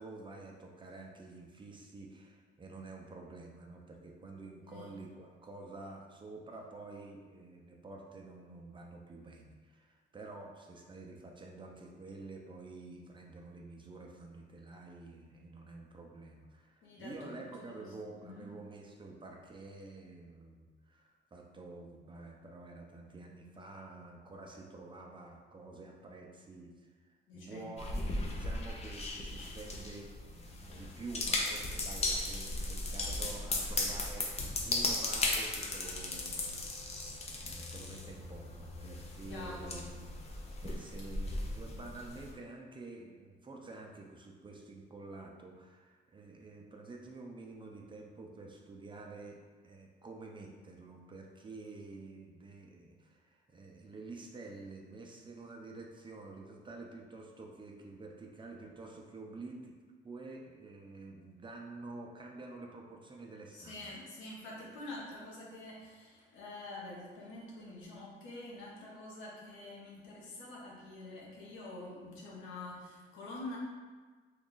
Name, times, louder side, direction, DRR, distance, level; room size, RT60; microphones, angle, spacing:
voice 1, 0.0-36.9 37.4-39.8 40.6-49.4 49.6-59.8 60.0-63.8, right 3 dB, 25° right, 0 dB, 0.5 m, -49 dB
voice 2, 4.7-5.0 16.8-17.9 18.2-18.5 27.3-28.1 39.3-40.0 63.5-73.6, left 2 dB, 90° left, -4 dB, 0.9 m, -47 dB
sound 1, 27.8-42.3, left 2 dB, 35° left, 0.5 m, -37 dB
2.9 x 2.4 x 3.7 m, 1.4 s
cardioid pair, 90°, 20 cm